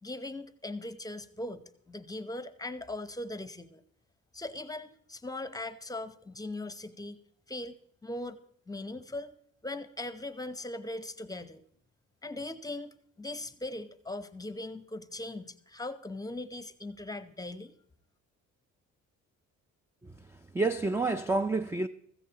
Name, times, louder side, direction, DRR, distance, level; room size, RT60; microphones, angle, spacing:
voice 1, 0.0-3.8 4.3-7.2 7.5-7.8 8.0-8.4 8.7-9.3 9.6-11.6 12.2-17.7, left 2 dB, 10° left, 0.8 m, -39 dB
voice 2, 20.0-21.9, right 3 dB, 10° right, 0.4 m, -29 dB
15.5 x 14.0 x 2.9 m
cardioid pair, 90°, 30 cm